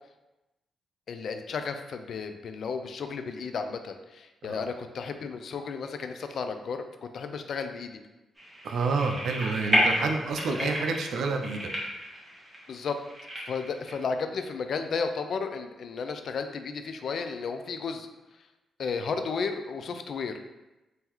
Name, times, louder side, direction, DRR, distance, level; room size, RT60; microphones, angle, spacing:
voice 1, 1.1-8.0 10.5-10.7 12.7-13.0 13.4-18.1 18.8-20.4, left 5 dB, 65° left, 7 dB, 0.3 m, -33 dB
sound 1, 8.4-13.9, equal, 10° right, 1.1 m, -31 dB
voice 2, 8.6-11.7, right 4 dB, 80° right, 4 dB, 0.4 m, -29 dB
3.7 x 2.7 x 3.0 m, 1.0 s
cardioid pair, 95°, 0 cm